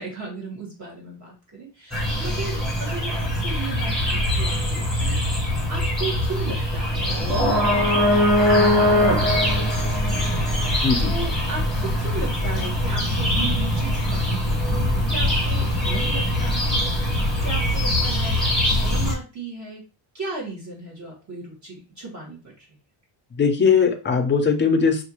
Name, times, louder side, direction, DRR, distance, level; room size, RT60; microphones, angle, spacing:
voice 1, 0.0-10.2 11.0-19.8 20.1-22.6, right 3 dB, 35° right, -3 dB, 1.6 m, -35 dB
sound 1, 1.9-19.1, left 1 dB, ahead, 1.1 m, -22 dB
voice 2, 10.8-11.1 23.4-25.0, left 5 dB, 25° left, 4 dB, 0.6 m, -19 dB
5.7 x 2.6 x 2.9 m, 0.32 s
cardioid pair, 160°, 47 cm